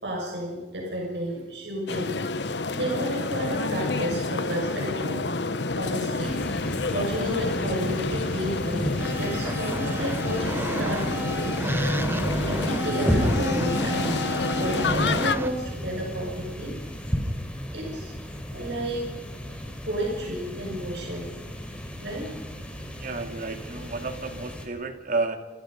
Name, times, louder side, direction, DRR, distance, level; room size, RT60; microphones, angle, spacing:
voice 1, 0.0-2.1 2.7-5.4 5.8-8.9 9.2-11.7 12.2-14.2 14.6-16.7 17.7-19.1 19.5-21.3 22.0-22.3, equal, 75° right, -1 dB, 6.1 m, -32 dB
sound 1, 1.9-15.4, left 3 dB, 75° left, 1.1 m, -29 dB
sound 2, 6.2-24.7, equal, 5° left, 4.7 m, -34 dB
sound 3, 9.0-15.5, right 1 dB, 15° right, 0.8 m, -30 dB
voice 2, 23.0-25.4, right 3 dB, 50° right, 6 dB, 2.6 m, -31 dB
29.5 x 28.0 x 5.3 m, 1.3 s
head